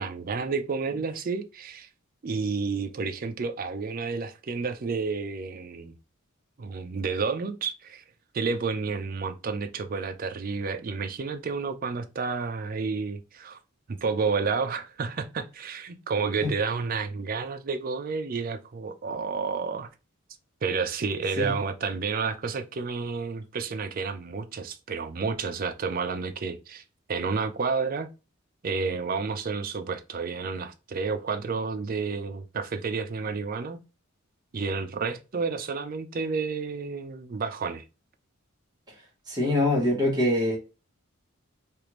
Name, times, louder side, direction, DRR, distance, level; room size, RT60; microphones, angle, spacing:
voice 1, 0.0-1.9 2.2-5.9 6.6-8.0 8.3-13.6 13.9-19.9 20.6-26.8 27.1-28.1 28.6-33.8 34.5-37.8, right 4 dB, 40° right, 0.4 m, -30 dB
voice 2, 39.3-40.6, left 1 dB, 20° right, 1.2 m, -24 dB
3.4 x 2.4 x 3.0 m
head